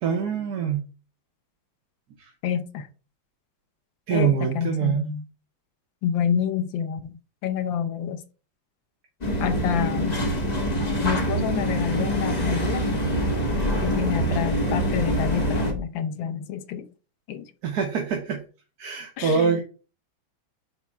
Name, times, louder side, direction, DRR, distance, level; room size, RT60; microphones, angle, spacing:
voice 1, 0.0-0.8 2.2-2.3 4.1-5.1 14.3-14.4 17.6-18.4 18.8-19.6, right 7 dB, 60° right, 1.3 m, -24 dB
voice 2, 2.4-2.9 4.1-5.2 6.0-7.0 7.4-8.2 9.4-10.2 11.0-12.9 13.8-16.9 17.3-17.4 19.2-19.6, left 8 dB, 75° left, 1.5 m, -28 dB
sound 1, 9.2-15.7, equal, 25° left, 1.1 m, -25 dB
6.1 x 4.2 x 5.5 m
omnidirectional pair, 2.2 m